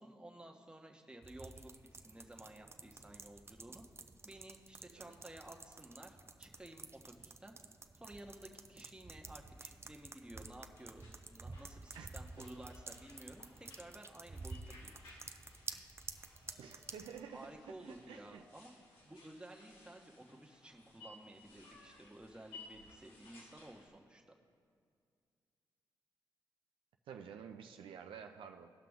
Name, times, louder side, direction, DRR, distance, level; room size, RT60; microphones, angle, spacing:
voice 1, 0.0-3.8 4.2-7.5 7.9-14.9 17.3-18.7 19.0-24.4, right 1 dB, 10° right, 1 dB, 1.3 m, -54 dB
sound 1, 1.2-17.2, right 3 dB, 30° right, 0.6 m, -51 dB
sound 2, 9.5-23.9, left 3 dB, 85° left, 1.8 m, -60 dB
voice 2, 11.9-12.5 16.6-18.4 27.1-28.7, right 7 dB, 80° right, 5 dB, 0.5 m, -51 dB
16.5 x 5.8 x 3.6 m, 2.3 s
supercardioid pair, 45°, 9 cm